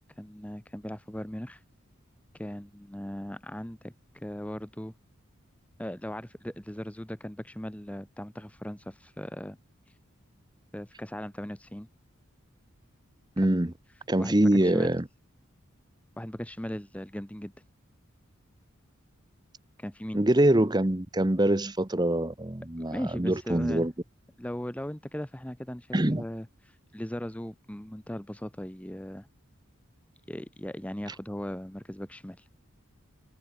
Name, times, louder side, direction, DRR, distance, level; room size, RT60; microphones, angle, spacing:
voice 1, 0.2-1.6 2.4-4.9 5.8-9.6 10.7-11.9 13.4-13.7 14.2-14.9 16.2-17.5 19.8-20.2 22.9-23.9 24.4-29.3 30.3-32.4, equal, 5° left, 0.7 m, -38 dB
voice 2, 13.4-13.7 14.1-15.0 20.1-23.9 25.9-26.2, right 1 dB, 20° right, 0.9 m, -24 dB
head